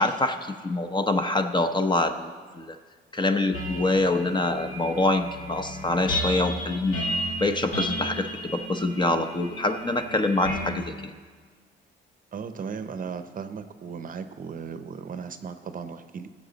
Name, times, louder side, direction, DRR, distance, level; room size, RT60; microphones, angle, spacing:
voice 1, 0.0-2.8 3.1-7.0 7.4-11.1, left 2 dB, 25° left, 7 dB, 0.7 m, -25 dB
sound 1, 3.5-10.7, equal, 80° left, 2.2 m, -33 dB
voice 2, 12.3-16.3, right 6 dB, 45° right, 10 dB, 0.7 m, -36 dB
16.5 x 7.4 x 4.0 m, 1.5 s
cardioid pair, 90°, 20 cm